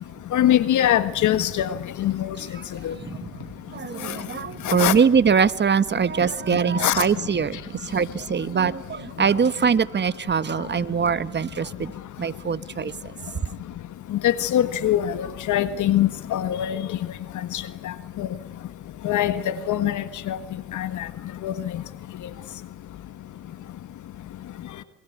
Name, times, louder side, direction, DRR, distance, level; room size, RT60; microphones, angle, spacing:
voice 1, 0.3-1.7 2.0-2.4 2.8-2.9 4.0-4.2 4.6-4.9 6.8-7.0 14.1-16.9 17.5-18.3 19.0-20.4 20.7-21.1 21.4-21.5, left 11 dB, 75° left, 12 dB, 1.6 m, -23 dB
voice 2, 3.7-11.9 12.2-12.9, right 6 dB, 35° right, 14 dB, 1.3 m, -23 dB
28.0 x 22.0 x 8.2 m, 0.87 s
cardioid pair, 90°, 30 cm